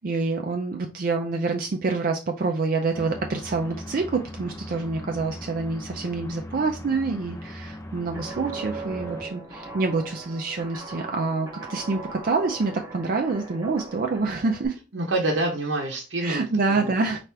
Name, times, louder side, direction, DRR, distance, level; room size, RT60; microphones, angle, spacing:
voice 1, 0.0-14.8 16.2-17.2, right 3 dB, 50° right, 3 dB, 0.4 m, -27 dB
sound 1, 2.9-9.2, left 1 dB, 20° left, 0.7 m, -39 dB
Guitar, 8.1-14.7, right 3 dB, 20° right, 0.9 m, -39 dB
voice 2, 9.1-9.4 14.9-16.9, right 2 dB, 90° right, 0 dB, 0.7 m, -28 dB
4.4 x 2.5 x 3.3 m, 0.31 s
head